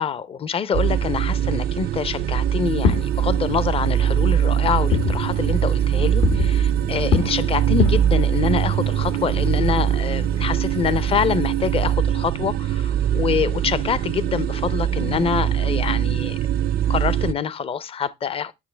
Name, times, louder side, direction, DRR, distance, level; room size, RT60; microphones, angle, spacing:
voice 1, 0.0-16.4 16.9-18.5, left 7 dB, 35° left, 0.5 m, -25 dB
sound 1, 0.7-17.3, right 10 dB, 65° right, 0.4 m, -22 dB
Fireworks, 2.7-11.9, left 5 dB, 80° left, 1.5 m, -29 dB
8.5 x 6.2 x 3.2 m
cardioid pair, 110°, 17 cm